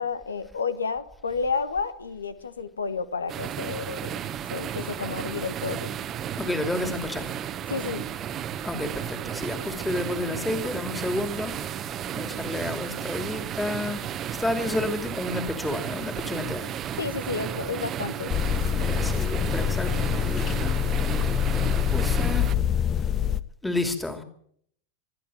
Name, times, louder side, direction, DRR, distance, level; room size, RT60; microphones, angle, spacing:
voice 1, 0.0-4.1 4.5-5.9 7.7-8.0 17.0-18.3, left 5 dB, 75° left, 14 dB, 1.2 m, -31 dB
sound 1, 3.3-22.5, right 9 dB, 30° right, 1.3 m, -33 dB
voice 2, 6.4-7.3 8.6-14.0 14.4-16.7 18.7-21.2 21.5-22.5 23.6-24.2, left 2 dB, 5° left, 8 dB, 2.7 m, -31 dB
sound 2, 18.3-23.4, left 9 dB, 25° left, 0.8 m, -25 dB
25.0 x 11.5 x 9.1 m, 0.66 s
figure-of-eight pair, 90°, 0 cm